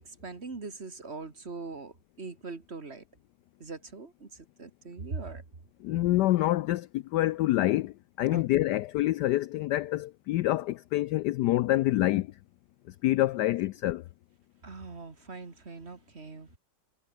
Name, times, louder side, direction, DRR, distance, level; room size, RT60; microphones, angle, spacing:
voice 1, 0.0-3.0 3.6-5.4 8.3-8.5 14.6-16.6, right 4 dB, 30° right, 2.2 m, -41 dB
voice 2, 5.8-12.3 13.0-14.0, left 16 dB, 80° left, 0.9 m, -26 dB
omnidirectional pair, 2.3 m